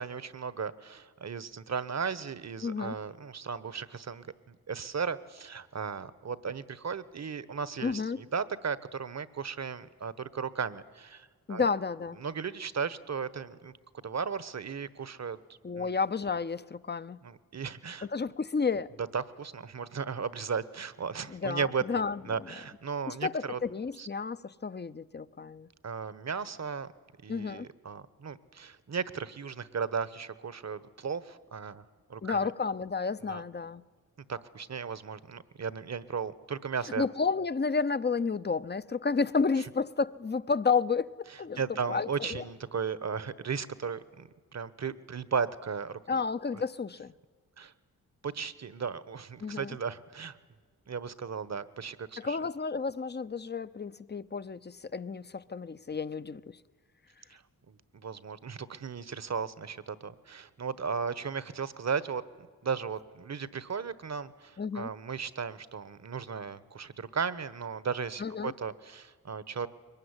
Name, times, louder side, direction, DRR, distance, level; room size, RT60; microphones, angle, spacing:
voice 1, 0.0-11.7 12.2-13.7 14.0-15.4 15.8-15.9 17.2-18.1 19.1-23.6 24.0-24.1 25.8-26.9 27.2-31.8 32.1-32.4 33.3-33.4 34.3-37.1 41.3-46.2 47.6-47.7 48.2-50.4 50.9-52.4 57.3-69.7, right 6 dB, 50° right, 1.3 m, -36 dB
voice 2, 2.6-3.0 7.8-8.2 11.5-12.2 15.6-17.2 18.1-18.9 21.3-22.2 23.1-25.7 27.3-27.7 32.2-33.8 37.0-41.6 41.9-42.4 46.1-47.1 49.4-49.8 52.2-56.6 64.6-64.9 68.2-68.5, left 5 dB, 30° left, 0.8 m, -31 dB
22.0 x 19.5 x 9.9 m
cardioid pair, 50°, 36 cm